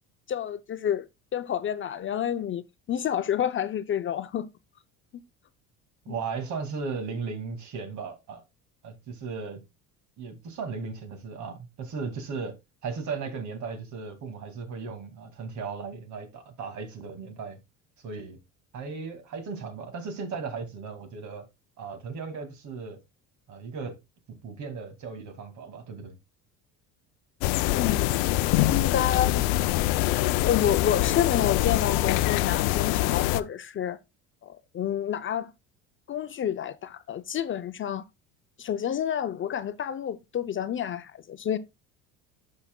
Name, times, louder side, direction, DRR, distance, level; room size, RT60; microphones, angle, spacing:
voice 1, 0.3-2.6 2.9-4.5 6.1-6.2 27.7-28.0 28.6-29.4 30.4-34.0 34.4-35.5 36.1-38.0 38.6-41.6, left 9 dB, 35° left, 0.5 m, -29 dB
voice 2, 6.1-8.4 8.8-9.6 10.2-12.6 12.8-17.6 18.0-18.4 18.7-21.5 21.8-23.0 23.5-24.0 24.4-26.2, right 5 dB, 55° right, 2.2 m, -36 dB
sound 1, 27.4-33.4, left 16 dB, 85° left, 0.6 m, -24 dB
11.5 x 5.7 x 2.2 m
supercardioid pair, 105°, 35 cm